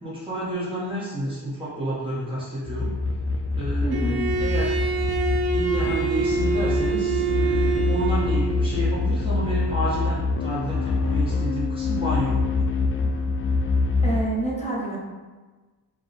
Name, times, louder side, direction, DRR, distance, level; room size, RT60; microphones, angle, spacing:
voice 1, 0.0-2.9 3.6-4.8 5.5-12.4, equal, 10° right, -9 dB, 1.1 m, -30 dB
sound 1, 2.7-14.2, left 3 dB, 35° left, 0.4 m, -25 dB
voice 2, 3.8-4.2 14.0-15.0, right 1 dB, 15° left, -4 dB, 1.0 m, -27 dB
Bowed string instrument, 3.9-8.7, right 4 dB, 60° right, 0.5 m, -26 dB
4.8 x 2.3 x 4.0 m, 1.3 s
wide cardioid pair, 105°, 42 cm